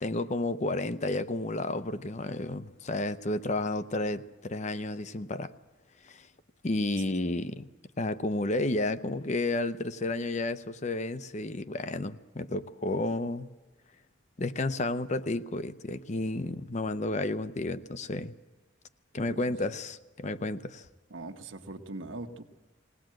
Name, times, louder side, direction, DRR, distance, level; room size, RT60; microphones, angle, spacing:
voice 1, 0.0-5.5 6.0-6.3 6.6-7.7 8.0-13.5 14.4-18.3 19.1-20.9, left 2 dB, 40° left, 0.7 m, -31 dB
voice 2, 19.3-19.6 21.1-22.4, right 2 dB, 85° right, 1.3 m, -41 dB
21.0 x 18.0 x 7.7 m
head